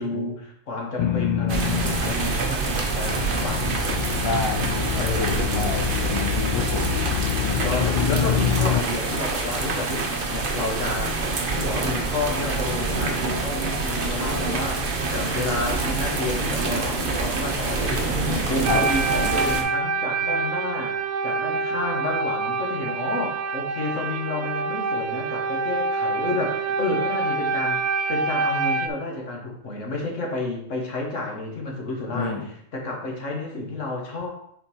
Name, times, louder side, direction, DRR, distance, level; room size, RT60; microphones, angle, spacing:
voice 1, 0.0-3.7 5.0-5.9 7.5-11.2 11.5-14.9 15.1-21.0 21.2-34.3, left 2 dB, 70° left, 0 dB, 1.8 m, -30 dB
sound 1, 1.0-2.4 2.7-8.8, left 9 dB, 90° left, 0.4 m, -26 dB
sound 2, 1.5-19.6, right 3 dB, 45° right, 1.1 m, -26 dB
voice 2, 4.2-6.9 18.7-18.8 32.1-32.5, left 3 dB, 25° left, 4 dB, 0.6 m, -29 dB
sound 3, 18.6-28.9, right 4 dB, 65° right, 0.8 m, -26 dB
7.1 x 4.4 x 4.4 m, 0.69 s
omnidirectional pair, 1.3 m